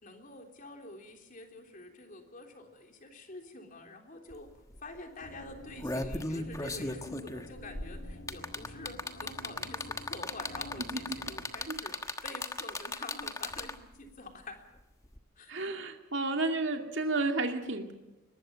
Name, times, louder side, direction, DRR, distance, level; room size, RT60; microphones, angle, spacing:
voice 1, 0.0-4.5 4.8-14.7 15.4-15.5, left 2 dB, 40° left, 4 dB, 3.5 m, -47 dB
sound 1, 4.3-4.4 4.7-5.0 5.5-13.9 15.1-15.2, left 2 dB, 15° left, 1.3 m, -37 dB
sound 2, 5.2-11.5, left 1 dB, 65° left, 2.4 m, -49 dB
voice 2, 15.5-17.9, right 2 dB, 55° right, 4 dB, 2.4 m, -31 dB
22.5 x 20.0 x 7.0 m, 1.1 s
head